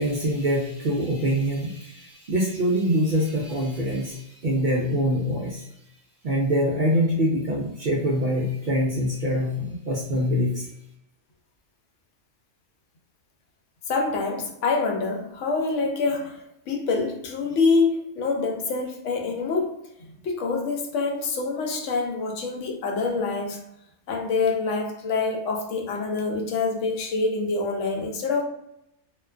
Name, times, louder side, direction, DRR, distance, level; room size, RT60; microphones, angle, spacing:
voice 1, 0.0-5.7 6.2-10.7, equal, 60° right, -3 dB, 0.5 m, -24 dB
voice 2, 13.9-19.8 20.1-23.6 24.1-28.4, left 4 dB, 85° left, 1 dB, 0.9 m, -26 dB
2.4 x 2.3 x 2.3 m, 0.81 s
omnidirectional pair, 1.2 m